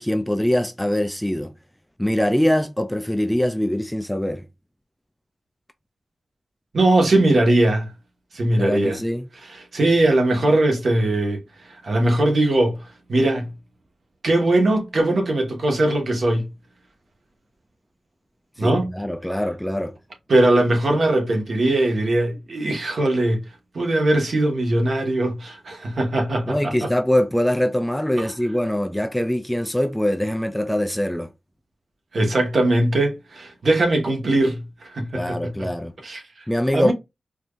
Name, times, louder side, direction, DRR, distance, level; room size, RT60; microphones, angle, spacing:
voice 1, 0.0-1.5 2.0-4.4 8.6-9.3 18.6-20.0 26.5-31.3 35.1-35.9 36.5-36.9, left 1 dB, 5° left, 0.3 m, -23 dB
voice 2, 6.7-7.9 8.3-9.0 9.7-11.4 11.8-12.8 13.1-13.5 14.2-16.5 18.6-18.9 20.3-23.4 23.7-26.7 28.2-28.3 32.1-35.5 36.0-36.2 36.7-36.9, right 1 dB, 55° right, 1.3 m, -20 dB
4.4 x 3.1 x 2.4 m
wide cardioid pair, 140°, 0 cm